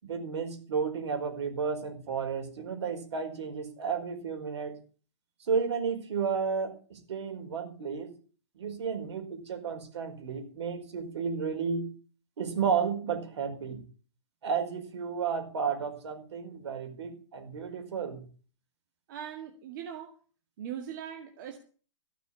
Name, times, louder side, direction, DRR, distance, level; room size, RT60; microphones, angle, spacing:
voice 1, 0.0-4.8 5.4-8.1 8.6-11.9 12.4-13.8 14.4-18.2, right 6 dB, 65° right, 6 dB, 4.9 m, -32 dB
voice 2, 19.1-20.2 20.6-21.6, right 9 dB, 40° right, 4 dB, 2.0 m, -40 dB
15.5 x 6.2 x 9.8 m, 0.39 s
hypercardioid pair, 160°, 16 cm